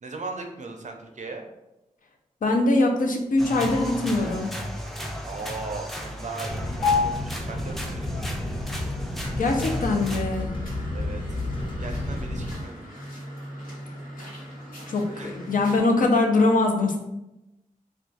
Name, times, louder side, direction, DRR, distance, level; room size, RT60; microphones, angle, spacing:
voice 1, 0.0-1.4 5.2-8.4 10.9-11.4 11.8-12.9 15.1-15.3, right 3 dB, 60° right, 3 dB, 0.4 m, -38 dB
voice 2, 2.4-4.5 9.4-10.5 14.9-17.0, left 2 dB, 70° left, 3 dB, 0.5 m, -22 dB
sound 1, 3.4-10.2, equal, ahead, 0.4 m, -35 dB
sound 2, 6.5-12.5, left 3 dB, 35° left, 0.8 m, -29 dB
sound 3, 9.6-15.8, equal, 90° left, 1.4 m, -41 dB
2.4 x 2.2 x 3.8 m, 0.93 s
wide cardioid pair, 80°, 14 cm